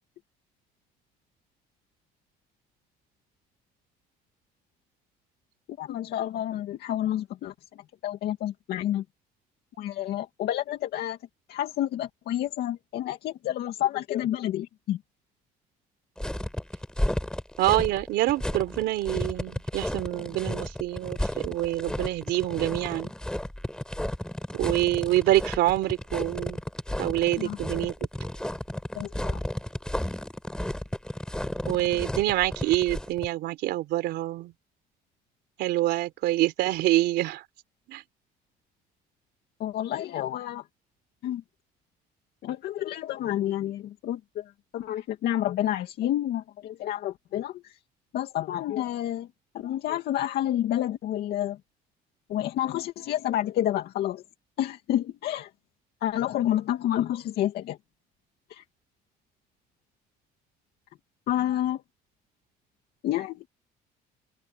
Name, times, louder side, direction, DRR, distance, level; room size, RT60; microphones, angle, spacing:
voice 1, 5.7-7.5 8.0-9.0 9.8-11.2 11.5-15.0 27.4-27.6 29.0-29.4 39.6-40.6 41.2-41.4 42.4-44.4 44.7-47.8 48.1-49.3 49.5-51.6 52.3-54.2 54.6-55.5 56.0-57.8 58.5-58.6 61.3-61.8 63.0-63.5, left 12 dB, 70° left, 2.4 m, -29 dB
sound 1, 16.2-33.3, left 1 dB, 5° left, 3.9 m, -33 dB
voice 2, 17.6-23.1 24.5-26.6 27.0-27.9 31.7-34.5 35.6-37.4 37.9-38.0, right 16 dB, 85° right, 3.8 m, -26 dB
open air
cardioid pair, 110°, 17 cm